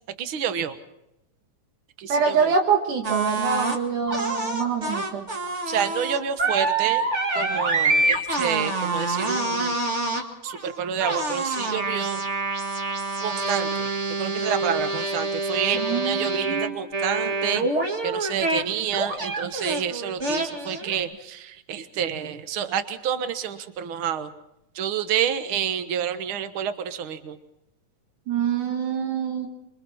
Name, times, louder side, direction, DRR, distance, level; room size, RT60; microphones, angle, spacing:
voice 1, 0.2-0.8 2.0-2.5 5.7-7.1 7.3-9.8 10.4-12.2 13.2-17.7 18.0-24.3 24.7-27.4, right 8 dB, 55° right, 10 dB, 1.7 m, -29 dB
voice 2, 2.1-5.3 15.7-16.8 28.3-29.5, right 6 dB, 75° right, 3 dB, 3.1 m, -25 dB
sound 1, 3.0-3.8 4.1-18.6 18.9-21.0, right 2 dB, 25° right, 1.7 m, -26 dB
27.0 x 24.0 x 4.3 m, 0.86 s
omnidirectional pair, 3.6 m